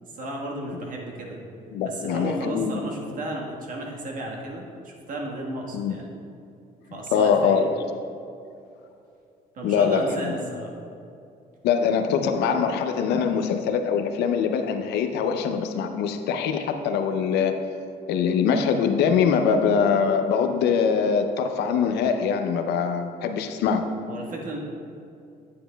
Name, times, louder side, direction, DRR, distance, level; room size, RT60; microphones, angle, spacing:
voice 1, 0.0-1.4 1.8-6.1 6.9-7.6 9.5-10.8 24.1-24.6, right 1 dB, 55° right, -1 dB, 1.4 m, -34 dB
voice 2, 1.7-2.8 5.7-6.0 7.1-7.7 9.6-10.4 11.6-17.6 18.1-23.8, left 6 dB, 80° left, 7 dB, 0.6 m, -23 dB
9.2 x 8.4 x 2.3 m, 2.5 s
cardioid pair, 110°, 17 cm